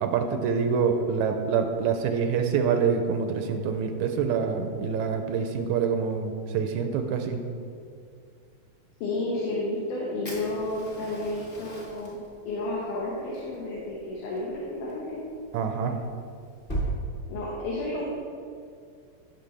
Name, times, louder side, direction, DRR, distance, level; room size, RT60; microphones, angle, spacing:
voice 1, 0.0-7.4 15.5-16.0, right 6 dB, 80° right, 6 dB, 1.9 m, -26 dB
voice 2, 9.0-12.2 12.5-15.2 17.3-18.1, left 2 dB, 80° left, -5 dB, 2.8 m, -31 dB
Fire, 10.2-16.9, right 1 dB, 25° left, 1.1 m, -40 dB
15.5 x 5.7 x 3.4 m, 2.3 s
omnidirectional pair, 3.6 m